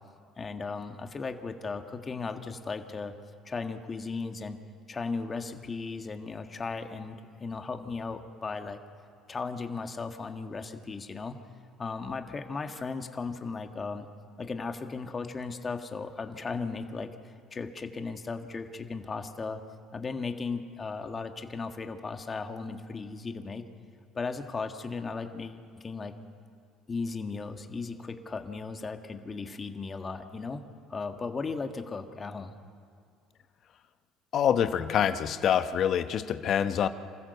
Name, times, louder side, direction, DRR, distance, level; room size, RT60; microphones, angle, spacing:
voice 1, 0.4-3.1 3.4-4.6 4.9-8.8 9.3-11.4 11.8-14.1 14.4-19.6 19.9-23.6 24.1-26.1 26.9-32.5, left 4 dB, 30° left, 6 dB, 1.7 m, -36 dB
voice 2, 34.3-36.9, left 9 dB, 55° left, 11 dB, 1.0 m, -26 dB
27.5 x 15.0 x 6.9 m, 2.3 s
supercardioid pair, 70°, 0 cm